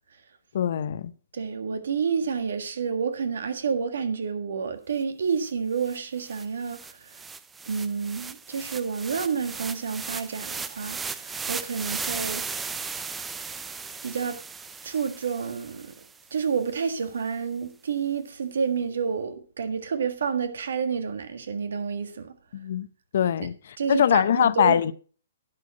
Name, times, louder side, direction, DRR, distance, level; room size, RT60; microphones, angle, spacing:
voice 1, 0.5-1.1 22.5-22.9 23.1-23.5 23.9-24.9, left 9 dB, 60° left, 0.7 m, -22 dB
voice 2, 1.3-7.0 7.6-12.5 14.0-14.4 14.8-15.9 16.3-22.3 23.8-24.9, right 6 dB, 70° right, 1.7 m, -29 dB
sound 1, 5.5-5.6 5.8-16.2, right 5 dB, 10° right, 0.5 m, -36 dB
11.0 x 6.4 x 5.8 m
hypercardioid pair, 130°, 0 cm